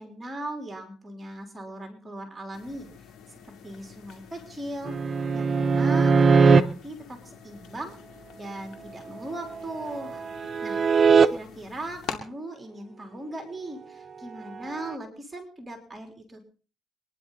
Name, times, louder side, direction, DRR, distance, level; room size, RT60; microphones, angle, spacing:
voice 1, 0.0-2.9 3.3-4.9 5.3-8.0 8.4-10.2 10.6-16.4, right 1 dB, 20° right, 4 dB, 3.6 m, -39 dB
sound 1, 2.5-12.2, left 8 dB, 80° left, 2.6 m, -46 dB
sound 2, 4.8-6.6 9.3-11.3 14.7-14.9, right 5 dB, 45° right, 1.0 m, -21 dB
24.5 x 10.5 x 4.1 m, 0.39 s
cardioid pair, 90°, 0 cm